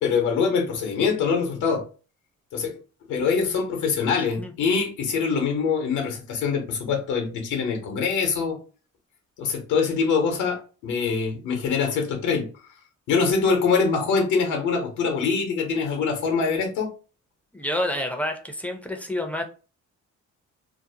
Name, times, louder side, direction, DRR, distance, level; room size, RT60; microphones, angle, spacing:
voice 1, 0.0-1.8 2.5-2.8 3.1-8.6 9.4-12.4 13.1-16.9, left 5 dB, 80° left, 0.8 m, -24 dB
voice 2, 17.5-19.4, left 1 dB, 5° left, 0.4 m, -28 dB
2.6 x 2.0 x 2.7 m
cardioid pair, 90°, 30 cm